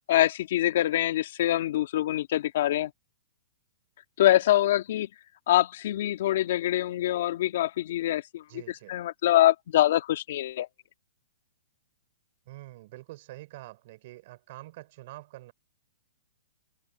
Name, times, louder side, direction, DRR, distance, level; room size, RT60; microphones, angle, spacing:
voice 1, 0.1-2.9 4.2-5.1 5.5-10.7, left 13 dB, 55° left, 1.6 m, -25 dB
voice 2, 8.5-9.0 12.5-15.5, right 18 dB, 45° right, 5.5 m, -46 dB
hypercardioid pair, 150°, 0 cm